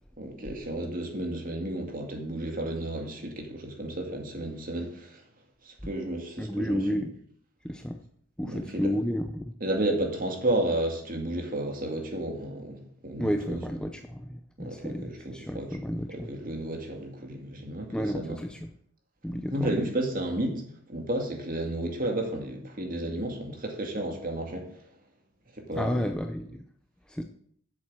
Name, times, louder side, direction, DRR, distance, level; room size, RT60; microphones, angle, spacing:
voice 1, 0.2-5.2 5.6-6.8 8.4-8.9 9.6-13.6 14.6-15.7 16.1-18.4 19.5-20.6 20.9-24.7 25.6-26.0, right 1 dB, 40° right, 2 dB, 2.2 m, -32 dB
voice 2, 6.4-7.1 7.6-8.0 8.4-9.5 13.2-16.3 17.9-18.7 19.2-19.8 25.8-26.6 27.1-27.2, equal, 5° left, 5 dB, 0.5 m, -31 dB
7.7 x 7.5 x 7.5 m, 0.65 s
head